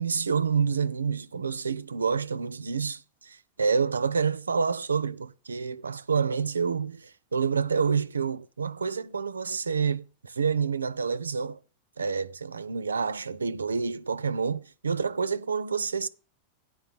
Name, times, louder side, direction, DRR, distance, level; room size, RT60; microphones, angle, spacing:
voice 1, 0.0-11.6 12.0-16.1, right 5 dB, 75° right, 0.4 m, -28 dB
10.0 x 3.9 x 7.4 m
figure-of-eight pair, 90°, 0 cm